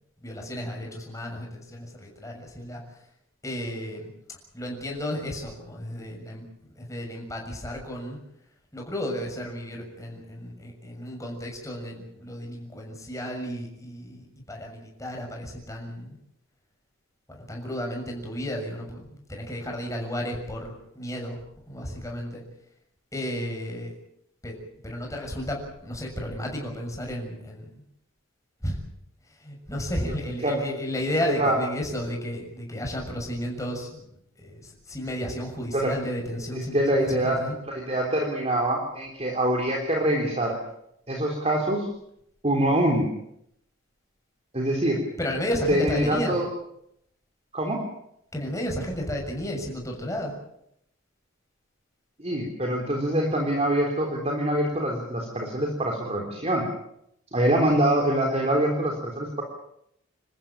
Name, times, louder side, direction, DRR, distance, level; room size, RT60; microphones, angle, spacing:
voice 1, 0.2-3.0 3.4-4.1 4.5-8.2 8.7-16.2 17.3-21.4 21.7-22.4 23.1-23.9 24.4-24.6 24.8-27.8 28.6-28.8 29.3-34.0 34.4-37.5 45.2-46.4 48.3-50.3, equal, 15° left, 1 dB, 6.8 m, -33 dB
voice 2, 36.5-37.4 37.6-40.6 41.1-41.9 42.4-43.1 44.5-45.0 45.7-46.5 47.5-47.8 52.2-56.6 57.3-59.4, right 1 dB, 30° right, 1 dB, 3.5 m, -24 dB
28.0 x 14.5 x 9.1 m, 0.76 s
head